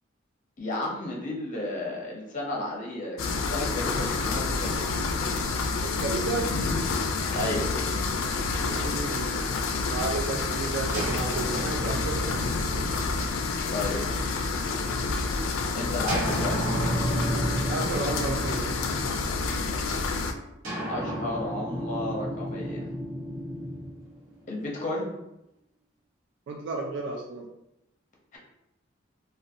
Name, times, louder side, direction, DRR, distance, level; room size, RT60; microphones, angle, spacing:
voice 1, 0.6-5.0 7.3-7.6 13.7-14.0 15.7-16.6 20.8-22.9 24.5-25.1 28.3-28.4, left 2 dB, 40° left, -1 dB, 0.6 m, -33 dB
sound 1, 3.2-20.3, left 4 dB, 90° left, 0.3 m, -28 dB
voice 2, 5.8-6.5 8.6-9.5 9.8-12.4 16.2-16.4 17.3-18.8 26.5-27.5, right 3 dB, 60° right, 0 dB, 0.3 m, -33 dB
sound 2, 10.9-14.7 16.1-19.6 20.6-24.8, right 1 dB, 90° right, 0.8 m, -33 dB
2.5 x 2.2 x 2.5 m, 0.86 s
head